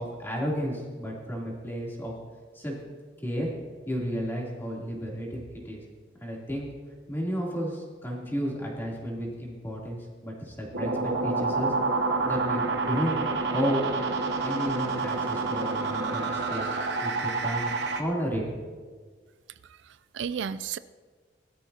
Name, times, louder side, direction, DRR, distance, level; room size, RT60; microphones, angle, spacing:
voice 1, 0.0-2.1 2.5-2.7 3.2-3.5 3.8-5.8 6.2-6.7 7.1-11.7 12.2-13.2 13.5-13.9 14.4-18.4, equal, 15° left, -4 dB, 3.2 m, -32 dB
sound 1, 10.7-18.0, right 3 dB, 70° right, 1.1 m, -28 dB
voice 2, 19.6-20.8, right 7 dB, 85° right, 14 dB, 0.4 m, -34 dB
21.0 x 13.0 x 2.9 m, 1.5 s
head